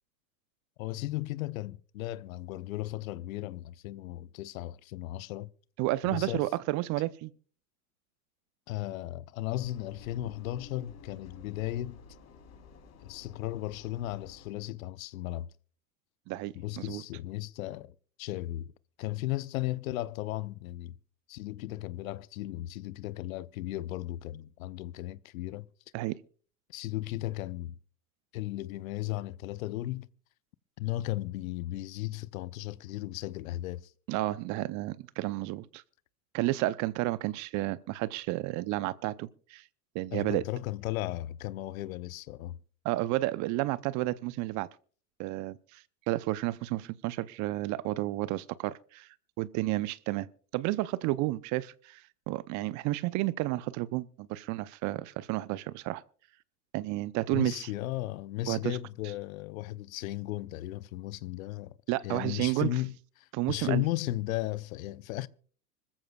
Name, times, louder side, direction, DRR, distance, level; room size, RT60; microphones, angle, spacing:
voice 1, 0.8-5.5 6.0-6.5 8.7-12.0 13.0-15.5 16.5-18.7 19.0-21.0 21.3-25.7 26.7-27.8 28.3-30.1 30.8-33.9 40.1-42.6 57.3-61.8 62.0-65.3, left 16 dB, 65° left, 0.8 m, -35 dB
voice 2, 5.8-7.3 16.3-17.0 25.9-26.2 34.1-35.8 36.3-39.6 39.9-40.4 42.8-44.7 45.2-49.1 49.4-50.3 50.5-52.0 52.3-56.0 56.7-57.7 58.5-58.8 61.9-62.7 63.3-63.8, right 18 dB, 40° right, 0.7 m, -31 dB
Engine, 9.5-14.5, left 5 dB, 35° left, 3.2 m, -52 dB
25.5 x 14.5 x 2.4 m
hypercardioid pair, 95°, 45 cm